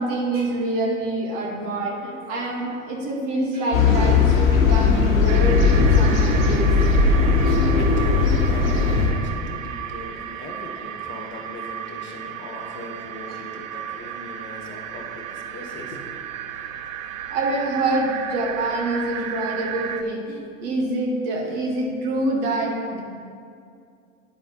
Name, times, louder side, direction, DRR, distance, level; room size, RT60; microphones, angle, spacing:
voice 1, 0.0-6.7 7.5-7.6 17.3-23.0, right 2 dB, 55° right, -2 dB, 1.9 m, -26 dB
sound 1, 3.7-9.1, left 4 dB, 85° left, 1.3 m, -18 dB
sound 2, 5.3-20.0, right 9 dB, 75° right, 0.5 m, -34 dB
voice 2, 7.7-16.2, left 1 dB, 30° left, 1 dB, 1.5 m, -38 dB
10.0 x 4.2 x 4.4 m, 2.4 s
hypercardioid pair, 80°, 40 cm